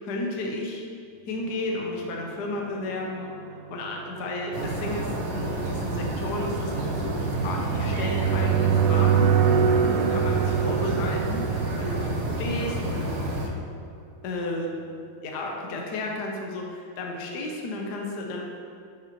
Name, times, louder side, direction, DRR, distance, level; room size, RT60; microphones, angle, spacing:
voice 1, 0.0-0.9 1.3-3.4 3.7-9.3 9.8-13.5 14.2-14.7 15.2-18.4, left 2 dB, 60° left, 0 dB, 1.3 m, -33 dB
sound 1, 2.3-13.1, right 7 dB, 75° right, 1.2 m, -26 dB
sound 2, 4.5-13.5, right 2 dB, 55° right, 1.5 m, -30 dB
10.0 x 5.8 x 3.0 m, 2.4 s
omnidirectional pair, 2.2 m